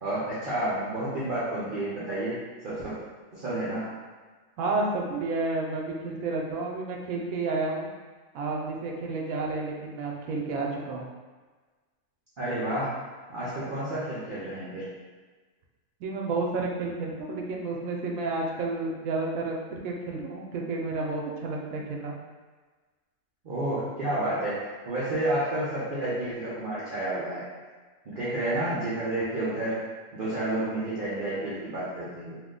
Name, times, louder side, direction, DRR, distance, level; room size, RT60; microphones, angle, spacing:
voice 1, 0.0-2.4 2.6-2.9 3.3-3.9 12.4-12.9 13.3-14.9 23.4-27.4 28.0-29.8 30.1-32.3, right 1 dB, 50° right, -9 dB, 0.7 m, -30 dB
voice 2, 4.6-7.9 8.3-11.1 16.0-22.1, right 3 dB, 80° right, -1 dB, 1.0 m, -31 dB
2.7 x 2.1 x 3.7 m, 1.4 s
omnidirectional pair, 1.4 m